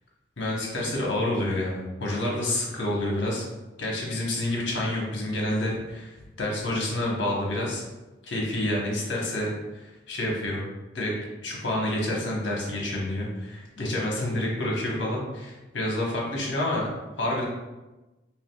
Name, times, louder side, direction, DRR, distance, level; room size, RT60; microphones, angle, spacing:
voice 1, 0.4-3.5 3.8-7.8 8.2-10.6 10.9-11.1 11.4-16.9 17.2-17.4, left 1 dB, 75° left, -2 dB, 1.0 m, -28 dB
4.8 x 3.0 x 2.3 m, 1.1 s
head